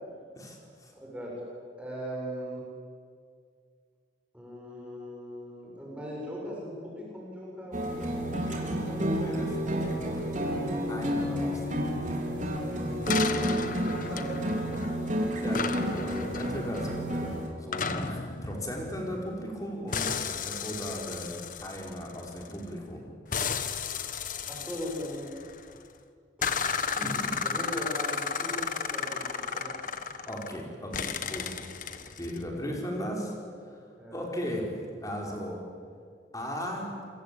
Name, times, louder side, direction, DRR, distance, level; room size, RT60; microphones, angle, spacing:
voice 1, 0.4-0.9 8.3-12.6 15.4-17.3 17.6-20.1 20.4-23.7 27.0-27.3 30.3-31.6 31.9-33.3 33.7-33.8 34.1-35.6 36.3-36.9, equal, 20° left, 0 dB, 5.4 m, -37 dB
voice 2, 0.9-1.3 1.8-2.6 4.3-9.3 13.8-15.1 24.5-25.3 26.4-29.2 29.5-29.9 34.0-34.2, equal, 5° right, -4 dB, 7.5 m, -40 dB
sound 1, 7.7-17.5, equal, 45° right, 4.5 m, -30 dB
sound 2, 13.1-15.1 15.5-19.5 19.9-22.7 23.3-25.8 26.4-30.6 30.9-32.4, left 6 dB, 45° left, 1.4 m, -34 dB
28.0 x 23.5 x 8.8 m, 2.2 s
head